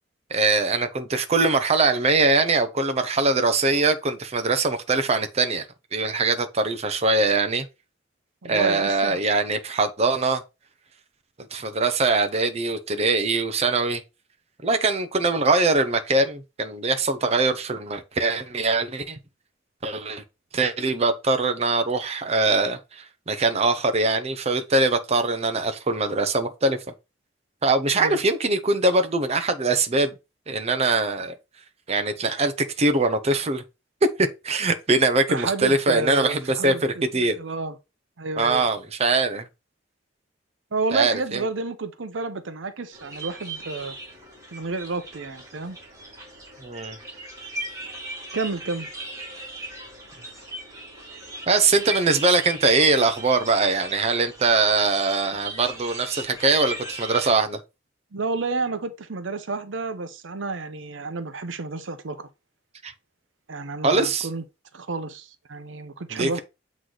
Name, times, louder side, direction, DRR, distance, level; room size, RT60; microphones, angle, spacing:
voice 1, 0.3-5.7 5.9-7.7 8.5-10.4 11.5-14.0 14.6-19.2 19.8-20.2 20.5-26.8 27.6-30.1 30.5-31.3 31.9-33.6 34.2-37.4 38.4-39.5 40.9-41.4 46.6-47.0 51.5-57.6 62.8-62.9 63.8-64.3 66.1-66.4, right 3 dB, 35° right, 0.6 m, -22 dB
voice 2, 8.4-9.2 27.9-28.2 35.3-37.8 38.2-38.6 40.7-43.9 44.5-45.8 48.3-48.9 58.1-62.3 63.5-64.4 64.7-66.4, right 3 dB, 75° right, 0.7 m, -30 dB
sound 1, 42.9-57.3, right 1 dB, 15° right, 1.9 m, -38 dB
7.9 x 3.1 x 3.9 m
head